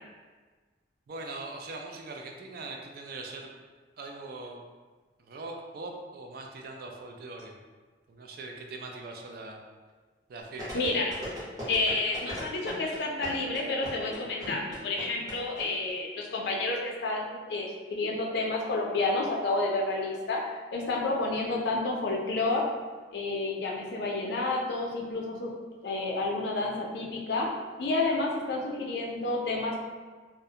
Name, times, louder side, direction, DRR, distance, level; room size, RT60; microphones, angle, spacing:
voice 1, 1.1-3.5 4.0-4.6 5.3-7.5 8.1-9.6 10.3-10.8, right 2 dB, 55° right, 1 dB, 0.3 m, -41 dB
sound 1, 10.6-15.6 15.9-16.0, equal, 20° right, 0.7 m, -38 dB
voice 2, 10.7-11.1 11.7-20.4 20.7-22.7 23.1-25.5 25.8-27.5 27.8-29.8, left 2 dB, 60° left, -1 dB, 0.4 m, -30 dB
2.3 x 2.1 x 2.7 m, 1.4 s
head